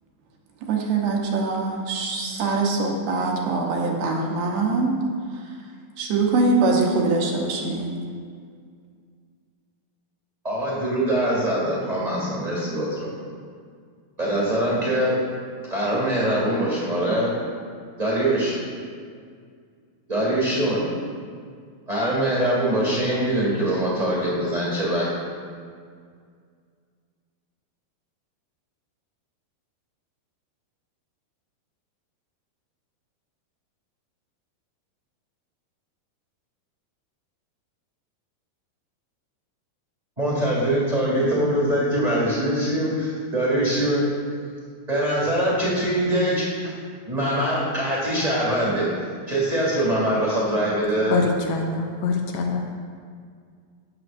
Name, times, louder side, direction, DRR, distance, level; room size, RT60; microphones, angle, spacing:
voice 1, 0.7-5.0 6.0-7.9, right 3 dB, 75° right, 0 dB, 2.8 m, -23 dB
voice 2, 10.4-13.1 14.2-15.2 15.7-17.3 18.0-18.6 20.1-20.8 21.9-25.0 40.2-44.1 44.9-46.7 47.0-48.9 49.3-51.2, right 1 dB, 20° right, -6 dB, 1.0 m, -23 dB
voice 3, 51.1-52.8, left 4 dB, 80° left, 3 dB, 2.4 m, -25 dB
17.0 x 6.4 x 2.6 m, 2.1 s
omnidirectional pair, 4.7 m